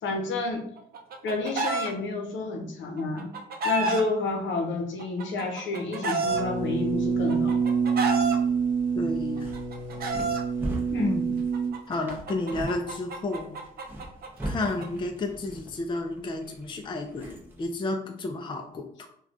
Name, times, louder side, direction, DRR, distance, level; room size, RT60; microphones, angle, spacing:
voice 1, 0.0-0.6 1.2-3.4 3.6-7.6 10.9-11.1, left 3 dB, 70° left, 3 dB, 0.8 m, -30 dB
Chicken rooster, 0.8-1.9 3.0-4.0 5.0-6.4 7.3-8.4 9.4-10.4 11.5-14.9, right 3 dB, 50° right, 0.6 m, -29 dB
sound 1, 6.2-11.7, right 5 dB, 70° right, 0.9 m, -27 dB
voice 2, 8.9-9.5 11.0-11.4 11.9-13.5 14.4-19.1, left 2 dB, 25° left, 4 dB, 0.4 m, -31 dB
bag being placed, 9.1-17.7, right 1 dB, 10° right, 0.6 m, -40 dB
3.2 x 2.3 x 2.5 m, 0.64 s
cardioid pair, 90°, 20 cm